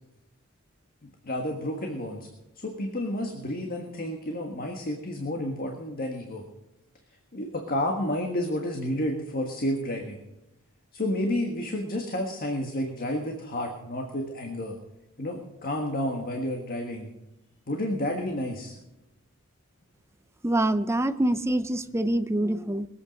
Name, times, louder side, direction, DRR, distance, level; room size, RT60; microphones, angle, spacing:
voice 1, 1.2-2.3 2.5-6.4 7.3-10.2 10.9-14.7 15.2-17.1 17.7-18.7, left 1 dB, 45° left, 2 dB, 1.6 m, -30 dB
voice 2, 20.4-22.9, right 1 dB, 15° right, 11 dB, 0.6 m, -25 dB
22.0 x 8.5 x 5.3 m, 0.94 s
head